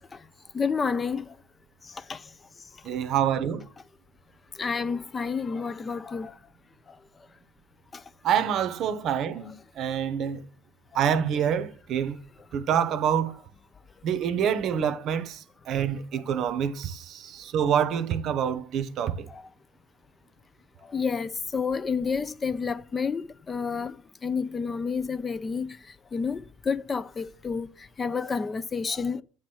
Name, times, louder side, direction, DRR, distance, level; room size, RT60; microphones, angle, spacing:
voice 1, 0.5-1.4 1.8-2.3 4.6-6.4 6.9-7.0 7.9-8.0 19.3-19.4 20.8-25.8 26.1-29.2, left 5 dB, 25° left, 0.4 m, -30 dB
voice 2, 2.8-3.7 8.2-10.4 10.9-12.2 12.5-13.3 14.0-19.3, right 8 dB, 50° right, 0.7 m, -27 dB
8.7 x 3.1 x 6.0 m
hypercardioid pair, 75°, 0 cm